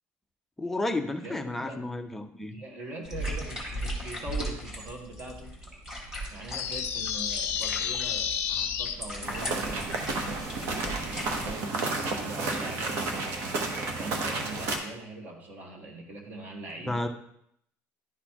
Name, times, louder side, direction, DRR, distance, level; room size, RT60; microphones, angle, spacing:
voice 1, 0.6-2.5 16.9-17.1, left 2 dB, 5° left, 5 dB, 0.4 m, -31 dB
voice 2, 1.2-1.8 2.5-5.6 6.3-9.7 10.2-13.4 14.0-17.0, right 2 dB, 35° right, 1 dB, 1.3 m, -42 dB
sound 1, 3.0-11.5, equal, 10° right, 1.3 m, -37 dB
sound 2, 6.5-8.9, left 8 dB, 50° left, 0.6 m, -30 dB
sound 3, 9.2-14.8, right 3 dB, 55° right, 1.0 m, -31 dB
11.0 x 4.0 x 2.9 m, 0.72 s
cardioid pair, 180°, 5 cm